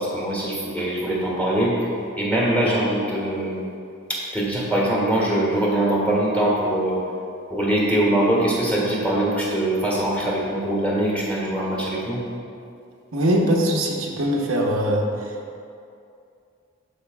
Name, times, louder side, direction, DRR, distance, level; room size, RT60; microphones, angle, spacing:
voice 1, 0.0-1.7 2.1-3.6 4.1-7.0 7.5-12.2, right 1 dB, 5° left, -4 dB, 1.6 m, -22 dB
voice 2, 13.1-15.1, equal, 90° right, -1 dB, 0.9 m, -21 dB
12.5 x 5.0 x 2.3 m, 2.5 s
head